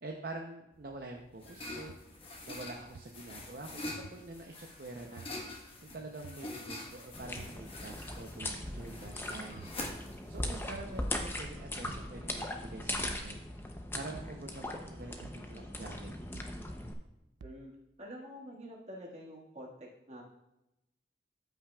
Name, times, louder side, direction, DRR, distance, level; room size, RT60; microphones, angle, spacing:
voice 1, 0.0-1.9 2.4-3.8 4.1-5.3 5.8-9.6 10.3-13.4 13.9-16.1, right 2 dB, 55° right, 1 dB, 0.7 m, -46 dB
sound 1, 0.8-11.4, left 2 dB, 30° left, 1.2 m, -46 dB
sound 2, 1.9-2.0 2.9-3.0 4.0-4.1 5.2-5.3 6.2-6.4 7.4-7.6 8.4-8.6 9.6-9.8 10.7-10.9 11.8-12.1 13.0-13.2 14.1-14.4 15.2-15.4 16.3-16.6 17.4-17.6, right 4 dB, 85° right, 0.4 m, -49 dB
sound 3, 7.1-16.9, left 1 dB, 15° left, 0.6 m, -39 dB
voice 2, 17.4-17.7 18.0-20.2, equal, 40° right, -3 dB, 1.7 m, -47 dB
13.5 x 5.7 x 2.3 m, 0.89 s
head